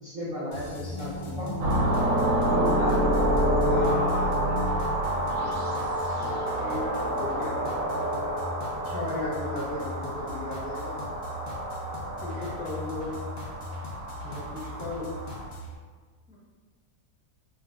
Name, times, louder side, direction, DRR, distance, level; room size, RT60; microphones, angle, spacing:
voice 1, 0.0-1.5 2.5-3.2, equal, 50° right, -10 dB, 0.4 m, -34 dB
sound 1, 0.5-15.7, left 1 dB, 70° left, 0.5 m, -40 dB
sound 2, 0.7-6.4 6.7-6.8, right 1 dB, 20° right, 0.8 m, -36 dB
sound 3, 1.6-15.5, right 1 dB, 70° right, 0.9 m, -28 dB
voice 2, 3.6-4.6 5.2-8.0 8.8-11.0 12.2-13.1 14.2-15.1 16.3-16.4, left 1 dB, 10° left, -9 dB, 0.6 m, -36 dB
2.5 x 2.2 x 3.5 m, 1.5 s
omnidirectional pair, 1.6 m